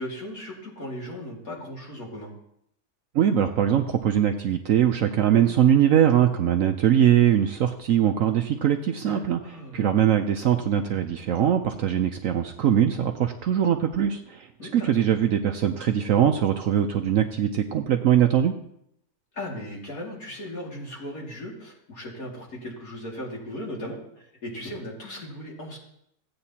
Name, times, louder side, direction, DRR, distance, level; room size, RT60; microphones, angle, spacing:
voice 1, 0.0-2.3 9.0-9.9 14.6-15.0 19.3-25.8, left 1 dB, 55° left, -3 dB, 2.8 m, -37 dB
voice 2, 3.1-9.4 9.7-14.5 14.7-18.6, right 10 dB, 65° right, 6 dB, 0.9 m, -21 dB
15.5 x 8.8 x 2.8 m, 0.74 s
omnidirectional pair, 1.7 m